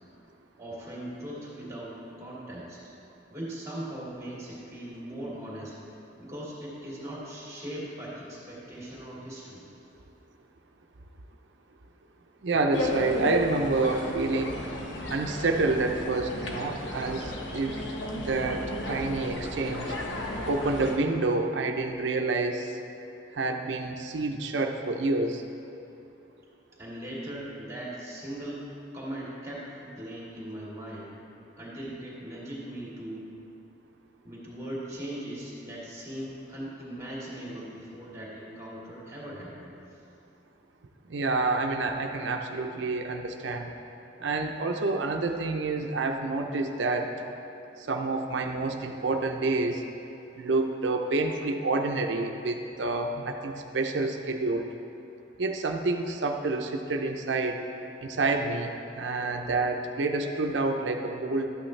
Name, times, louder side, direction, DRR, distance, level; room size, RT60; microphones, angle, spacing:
voice 1, 0.6-2.8 3.3-5.8 6.2-9.6 26.8-28.7 28.9-31.2 31.6-33.2 34.2-39.8, right 1 dB, 15° right, -7 dB, 2.4 m, -39 dB
voice 2, 12.4-14.6 15.1-17.9 18.2-20.0 20.5-22.8 23.3-25.4 41.1-43.7 44.2-47.3 47.8-49.8 50.4-54.7 55.4-57.6 58.0-61.5, right 3 dB, 70° right, 4 dB, 0.6 m, -28 dB
sound 1, 12.7-21.0, left 1 dB, 75° left, 1.1 m, -34 dB
12.5 x 8.8 x 3.2 m, 2.8 s
head